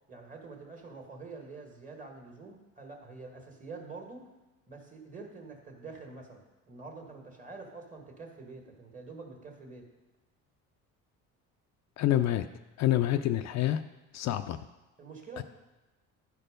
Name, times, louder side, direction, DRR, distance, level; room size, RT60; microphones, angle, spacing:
voice 1, 0.1-4.3 4.7-9.9 15.0-15.4, right 3 dB, 25° right, 2 dB, 1.8 m, -46 dB
voice 2, 12.0-12.5 12.8-13.8 14.1-14.6 15.4-15.5, left 13 dB, 55° left, 9 dB, 0.4 m, -27 dB
12.0 x 4.5 x 5.1 m, 1.1 s
cardioid pair, 105°, 33 cm